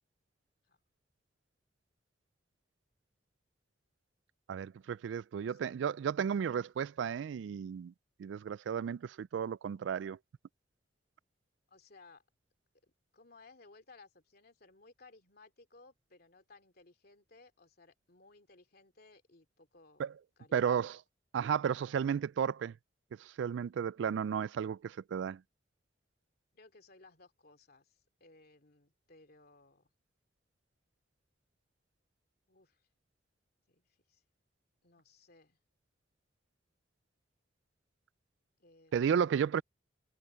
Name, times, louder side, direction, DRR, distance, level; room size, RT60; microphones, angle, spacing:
voice 1, 4.5-7.9 8.2-10.2 20.0-20.1 20.5-21.0 21.3-22.7 23.2-25.4 38.9-39.6, right 7 dB, 80° right, 0.3 m, -33 dB
voice 2, 5.4-5.8 11.7-12.2 12.8-20.1 20.4-20.8 26.5-29.9 32.5-32.8 33.7-34.2 34.8-35.6 38.6-39.4, left 3 dB, 60° left, 2.8 m, -61 dB
head